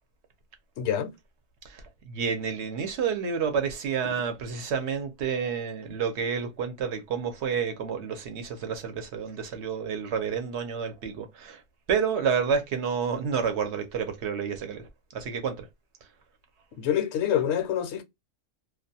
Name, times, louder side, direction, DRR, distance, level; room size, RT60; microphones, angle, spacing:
voice 1, 0.8-1.1 16.8-18.0, left 9 dB, 65° left, 0.8 m, -26 dB
voice 2, 1.6-11.6 11.9-14.8 15.1-15.7, right 6 dB, 65° right, 0.9 m, -29 dB
2.4 x 2.2 x 2.6 m
omnidirectional pair, 1.3 m